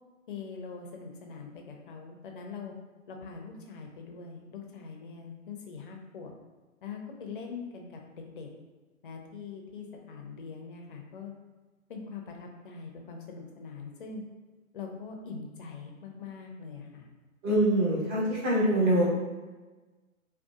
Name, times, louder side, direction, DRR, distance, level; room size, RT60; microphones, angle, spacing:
voice 1, 0.3-2.7 3.1-6.3 6.8-8.5 9.0-11.3 11.9-14.2 14.7-17.1, left 5 dB, 40° left, 2 dB, 0.5 m, -42 dB
voice 2, 17.4-19.1, right 1 dB, 35° right, -7 dB, 1.2 m, -24 dB
3.7 x 2.3 x 2.3 m, 1.2 s
hypercardioid pair, 135°, 42 cm